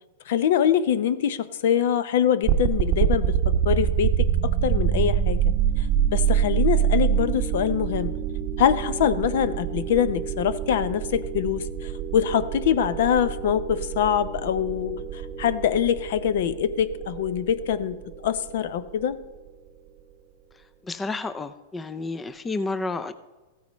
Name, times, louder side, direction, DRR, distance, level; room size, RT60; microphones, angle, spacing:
voice 1, 0.3-3.3 3.6-5.4 5.8-8.1 8.6-19.2, left 9 dB, 65° left, 14 dB, 0.7 m, -24 dB
sound 1, 2.4-19.4, right 9 dB, 30° right, 0.7 m, -26 dB
voice 2, 20.5-23.1, left 3 dB, 10° left, 12 dB, 0.4 m, -31 dB
14.5 x 9.4 x 3.1 m, 1.2 s
supercardioid pair, 150°, 0 cm